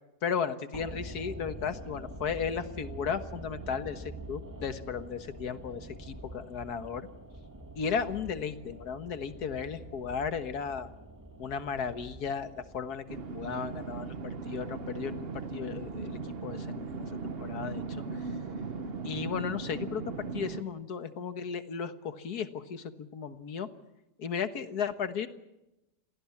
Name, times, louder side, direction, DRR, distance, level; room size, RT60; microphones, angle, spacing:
voice 1, 0.2-7.1 7.8-10.9 11.4-17.1 17.4-18.0 19.0-23.7 24.2-25.3, left 6 dB, 75° left, 11 dB, 1.9 m, -35 dB
sound 1, 0.7-18.9 19.2-19.3, right 1 dB, 10° right, 1.6 m, -47 dB
sound 2, 13.1-20.6, right 4 dB, 40° right, 1.1 m, -38 dB
27.5 x 18.0 x 7.3 m, 0.93 s
omnidirectional pair, 1.7 m